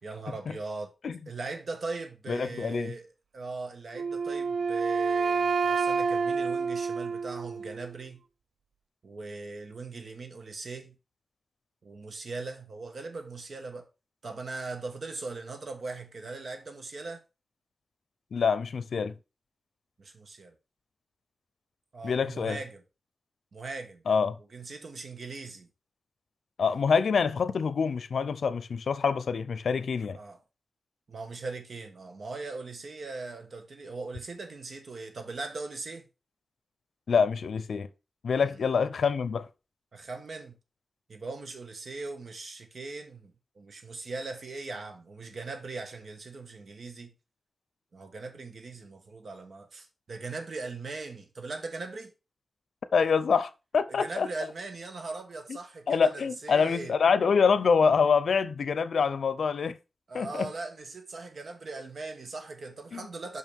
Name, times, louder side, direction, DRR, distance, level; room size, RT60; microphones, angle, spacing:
voice 1, 0.0-0.9 1.3-3.1 3.3-8.2 9.0-10.9 11.8-13.9 14.2-17.2 20.0-20.5 21.9-22.8 23.5-24.0 24.5-25.7 30.1-30.4 31.1-36.0 38.4-38.7 39.9-40.6 41.1-47.1 47.9-52.1 53.9-56.9 60.1-63.4, right 3 dB, 60° right, 1.3 m, -40 dB
voice 2, 2.3-2.9 18.3-19.1 22.0-22.6 24.1-24.4 26.6-30.2 37.1-37.9 38.2-39.5 52.9-54.3 55.5-55.6 55.9-59.8 60.1-60.5 62.9-63.0, left 5 dB, 90° left, 0.6 m, -26 dB
Wind instrument woodwind instrument, 3.9-7.9, right 5 dB, 75° right, 0.4 m, -28 dB
5.9 x 5.5 x 4.6 m
wide cardioid pair, 140°, 0 cm